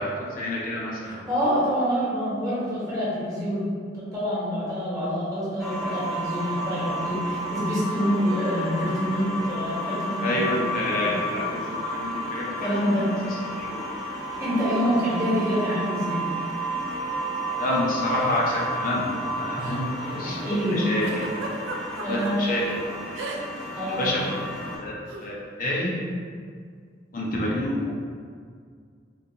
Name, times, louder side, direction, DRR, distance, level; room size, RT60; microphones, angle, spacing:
voice 1, 0.0-1.2 10.2-13.1 13.6-13.8 17.6-19.1 19.3-21.4 22.1-22.6 24.0-25.9 27.1-27.9, left 1 dB, 45° left, -4 dB, 0.5 m, -28 dB
voice 2, 1.0-3.6 3.9-10.3 10.8-11.1 12.6-13.1 14.4-16.2 19.5-20.8 22.0-22.4 23.7-24.0, equal, 20° right, -9 dB, 1.1 m, -26 dB
sound 1, 5.6-24.8, equal, ahead, 0.6 m, -32 dB
Giggle, 21.0-22.3 23.1-23.7 23.9-24.2 25.1-25.3, right 2 dB, 75° right, 0.4 m, -34 dB
3.7 x 2.3 x 2.8 m, 2.1 s
head